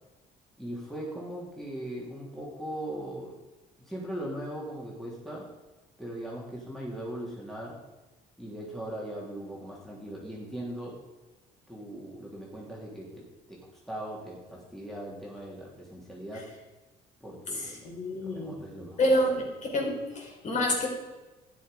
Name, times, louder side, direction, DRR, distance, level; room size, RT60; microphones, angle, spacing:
voice 1, 0.6-3.3 3.8-5.5 6.0-7.8 8.4-11.0 11.7-13.6 13.9-16.5 17.2-17.9 18.2-19.1, right 1 dB, ahead, -4 dB, 2.9 m, -39 dB
voice 2, 17.5-18.6 19.0-19.3 19.7-20.9, left 1 dB, 45° left, -1 dB, 4.4 m, -28 dB
12.5 x 9.8 x 5.0 m, 1.1 s
cardioid pair, 110°, 17 cm